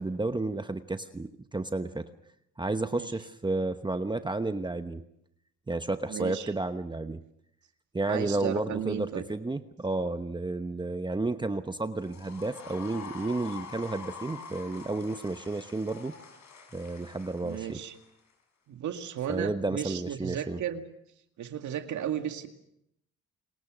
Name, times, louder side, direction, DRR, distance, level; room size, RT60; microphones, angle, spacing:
voice 1, 0.0-2.1 2.6-5.0 5.7-7.2 7.9-16.1 16.7-17.8 19.3-20.6, right 2 dB, 15° right, 9 dB, 1.0 m, -32 dB
voice 2, 6.1-6.5 8.1-9.2 17.4-18.0 18.7-20.8 21.4-22.5, right 9 dB, 70° right, 6 dB, 2.1 m, -34 dB
sound 1, 12.0-18.3, left 5 dB, 65° left, 7.1 m, -46 dB
30.0 x 20.0 x 6.3 m, 0.78 s
cardioid pair, 90°, 30 cm